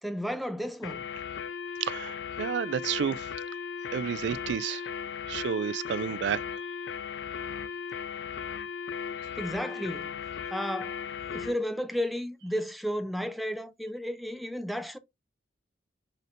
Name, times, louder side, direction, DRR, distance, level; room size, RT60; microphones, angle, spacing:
voice 1, 0.0-1.0 9.4-10.1 10.5-11.0 11.3-15.0, equal, ahead, 0.4 m, -33 dB
sound 1, 0.8-11.6, left 7 dB, 75° left, 0.3 m, -37 dB
voice 2, 1.8-3.3 3.9-4.8 5.3-6.4, right 7 dB, 75° right, 0.3 m, -31 dB
5.0 x 4.2 x 2.5 m
head